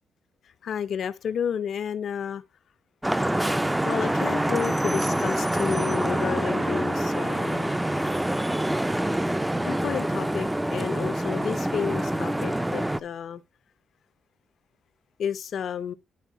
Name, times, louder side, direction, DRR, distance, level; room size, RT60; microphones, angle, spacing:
voice 1, 0.6-2.4 3.8-7.8 9.7-13.4 15.2-15.9, left 8 dB, 55° left, 0.6 m, -31 dB
Vehicle horn car horn honking / Traffic noise roadway noise, 3.0-13.0, right 1 dB, 5° right, 0.4 m, -26 dB
11.0 x 4.5 x 4.6 m
cardioid pair, 155°, 0 cm